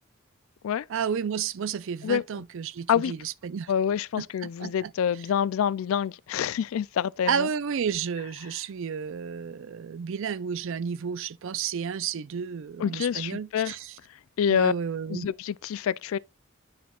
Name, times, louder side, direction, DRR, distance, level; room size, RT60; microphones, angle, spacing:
voice 1, 0.9-3.7 4.2-4.9 7.3-13.9 14.5-15.3, right 7 dB, 65° right, 0.4 m, -31 dB
voice 2, 3.7-7.5 12.8-13.8 14.4-14.7 15.1-16.2, left 8 dB, 70° left, 0.3 m, -26 dB
12.0 x 4.3 x 2.3 m
head